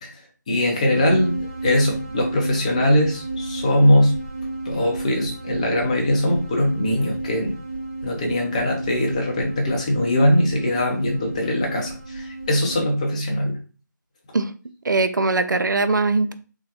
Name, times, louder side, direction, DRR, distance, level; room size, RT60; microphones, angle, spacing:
voice 1, 0.5-4.1 4.7-7.5 8.0-13.6, left 1 dB, 20° left, 0 dB, 0.6 m, -21 dB
sound 1, 0.9-12.8, right 2 dB, 25° right, 0.8 m, -32 dB
voice 2, 14.8-16.3, right 3 dB, 70° right, 10 dB, 0.4 m, -21 dB
3.7 x 2.1 x 2.9 m, 0.36 s
figure-of-eight pair, 160°, 11 cm